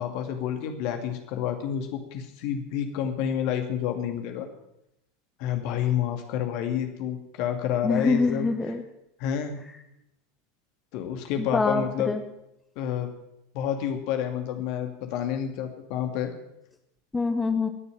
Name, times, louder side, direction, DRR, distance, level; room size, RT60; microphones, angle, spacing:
voice 1, 0.0-4.5 5.4-8.5 9.2-9.6 10.9-12.1 12.8-13.1 13.5-16.3, left 9 dB, 50° left, 6 dB, 2.4 m, -29 dB
voice 2, 7.8-8.8 11.4-12.2 17.1-17.7, left 3 dB, 15° left, 6 dB, 1.1 m, -25 dB
20.5 x 6.9 x 8.9 m, 0.81 s
figure-of-eight pair, 85°, 0 cm